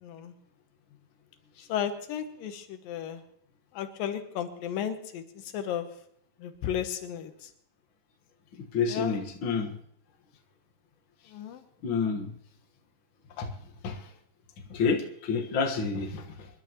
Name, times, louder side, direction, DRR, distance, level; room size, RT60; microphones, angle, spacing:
voice 1, 0.0-0.3 1.7-3.2 3.7-5.2 5.5-5.9 6.4-7.5 8.9-9.2 11.3-11.6, left 9 dB, 80° left, 8 dB, 2.7 m, -34 dB
voice 2, 8.7-9.7 11.8-12.3 13.4-13.5 13.8-14.0 14.7-16.5, left 5 dB, 50° left, 2 dB, 1.7 m, -29 dB
27.0 x 11.5 x 3.0 m, 0.66 s
omnidirectional pair, 4.0 m